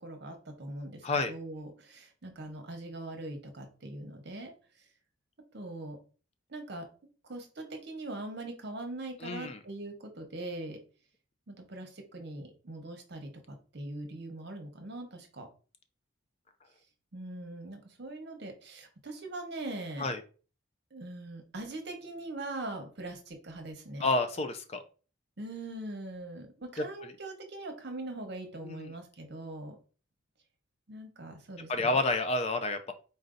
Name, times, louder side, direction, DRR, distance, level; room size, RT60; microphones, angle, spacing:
voice 1, 0.0-4.5 5.5-6.0 6.5-6.9 7.2-10.8 11.5-15.5 17.1-20.2 20.9-24.1 25.4-29.8 30.9-32.0, right 2 dB, 55° right, 5 dB, 0.9 m, -41 dB
voice 2, 9.2-9.6 20.0-20.2 24.0-24.8 27.0-27.1 28.6-28.9 31.7-32.9, left 2 dB, 30° left, 9 dB, 0.4 m, -30 dB
4.2 x 2.6 x 3.7 m, 0.37 s
head